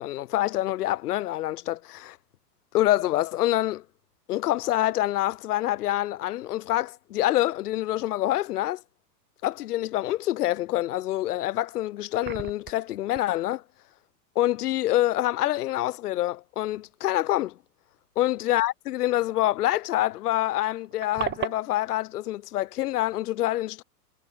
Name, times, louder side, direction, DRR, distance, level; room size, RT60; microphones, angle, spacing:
voice 1, 0.0-2.2 2.7-3.8 4.3-8.8 9.4-13.6 14.4-17.6 18.2-23.8, left 15 dB, 65° left, 1.8 m, -26 dB
sound 1, 11.5-11.6 11.9-12.9 13.2-13.3 15.7-15.9 16.7-16.8 17.1-17.2 19.6-19.7 19.9-20.0 20.3-21.6, right 11 dB, 20° right, 2.6 m, -35 dB
hypercardioid pair, 135°, 49 cm